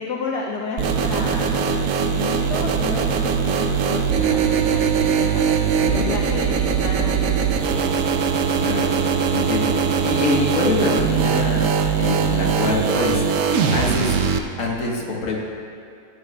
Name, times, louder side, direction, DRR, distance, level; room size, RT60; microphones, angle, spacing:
voice 1, 0.0-5.6 5.9-8.0, left 4 dB, 75° left, -2 dB, 1.3 m, -31 dB
sound 1, 0.8-14.4, right 6 dB, 70° right, 0.8 m, -21 dB
voice 2, 1.3-1.7 5.8-6.1 8.6-9.0 9.3-13.2 13.7-14.1 14.6-15.4, left 3 dB, 55° left, -3 dB, 1.7 m, -25 dB
14.5 x 8.9 x 2.2 m, 2.4 s
omnidirectional pair, 1.8 m